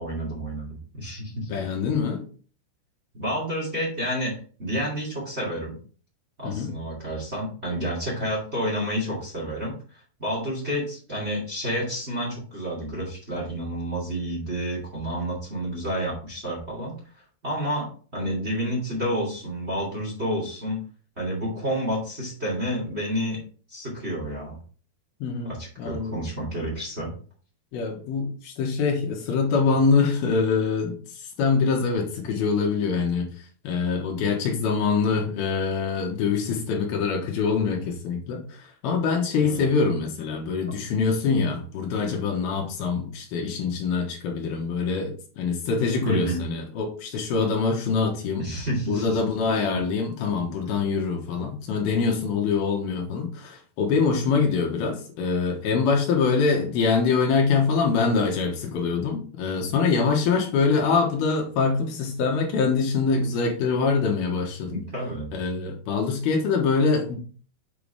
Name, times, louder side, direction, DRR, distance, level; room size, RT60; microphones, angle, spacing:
voice 1, 0.0-1.5 3.1-5.8 6.4-9.7 10.2-16.9 17.4-20.8 21.2-23.4 23.7-24.6 25.4-27.1 39.4-39.6 46.0-46.4 48.4-49.2 49.7-49.8 64.7-65.3, equal, 20° right, -3 dB, 2.3 m, -29 dB
voice 2, 1.5-2.2 6.4-6.7 25.2-26.2 27.7-33.3 33.6-48.5 48.9-64.9 65.3-67.2, left 5 dB, 75° left, 2 dB, 3.3 m, -24 dB
7.6 x 5.8 x 3.5 m, 0.40 s
omnidirectional pair, 4.5 m